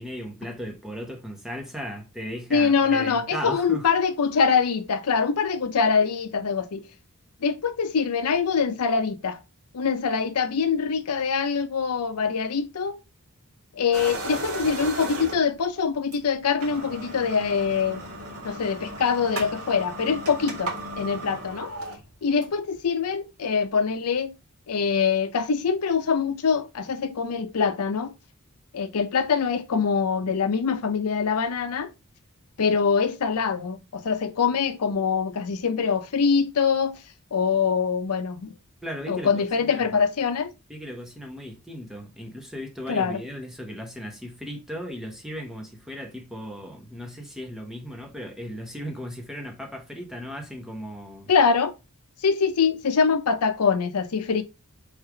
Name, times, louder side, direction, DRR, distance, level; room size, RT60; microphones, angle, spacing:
voice 1, 0.0-3.9 38.8-40.0 40.7-51.3, equal, ahead, 0.9 m, -36 dB
voice 2, 2.5-6.9 7.4-9.4 9.7-13.0 13.7-18.0 18.4-21.7 22.2-24.3 24.7-28.1 28.7-31.9 32.6-37.0 37.3-38.5 39.1-40.5 42.9-43.2 51.3-51.7 52.2-54.4, left 5 dB, 80° left, 0.6 m, -24 dB
sound 1, 13.9-15.6 16.1-16.2 16.5-22.7, right 2 dB, 90° right, 1.8 m, -35 dB
3.5 x 3.3 x 4.5 m
head